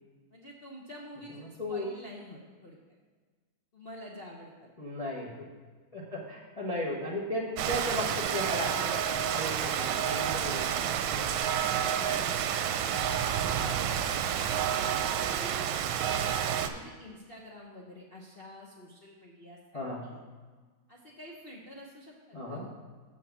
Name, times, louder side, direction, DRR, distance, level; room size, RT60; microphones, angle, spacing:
voice 1, 0.3-2.8 3.7-4.7 12.0-12.6 13.2-14.0 14.5-15.5 16.0-20.2 20.9-22.7, left 1 dB, 65° left, -3 dB, 0.5 m, -48 dB
voice 2, 1.3-1.9 4.8-5.5 5.9-9.0 9.3-11.5 19.7-20.1 22.3-22.7, left 1 dB, 25° left, -4 dB, 0.8 m, -36 dB
Rain, 7.6-16.7, right 9 dB, 80° right, 1.3 m, -29 dB
7.5 x 4.5 x 7.1 m, 1.4 s
omnidirectional pair, 2.2 m